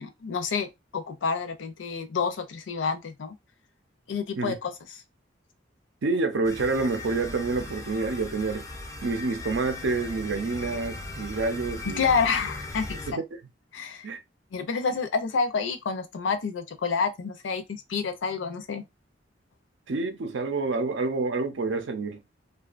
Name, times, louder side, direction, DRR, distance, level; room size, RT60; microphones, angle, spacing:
voice 1, 0.0-3.4 4.1-4.7 12.0-13.2 13.7-14.1 14.5-18.8, left 5 dB, 75° left, 0.5 m, -28 dB
voice 2, 6.0-8.6 9.0-12.1 13.1-13.2 14.0-14.2 19.9-22.2, right 3 dB, 70° right, 0.5 m, -28 dB
sound 1, 6.4-13.1, left 2 dB, 15° left, 0.4 m, -38 dB
2.5 x 2.2 x 2.4 m
head